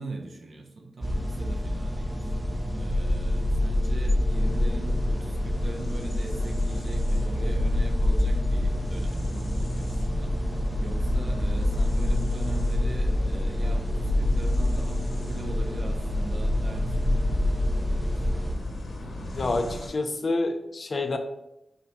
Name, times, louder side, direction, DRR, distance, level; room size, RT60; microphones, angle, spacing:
voice 1, 0.0-18.4, right 2 dB, 60° right, 3 dB, 0.6 m, -41 dB
sound 1, 1.0-18.5, left 1 dB, 10° right, 0.5 m, -26 dB
sound 2, 4.3-19.9, left 1 dB, 65° left, 0.9 m, -37 dB
voice 2, 19.3-21.2, left 2 dB, 50° left, 7 dB, 0.4 m, -28 dB
5.0 x 2.7 x 2.9 m, 0.88 s
wide cardioid pair, 95°, 0 cm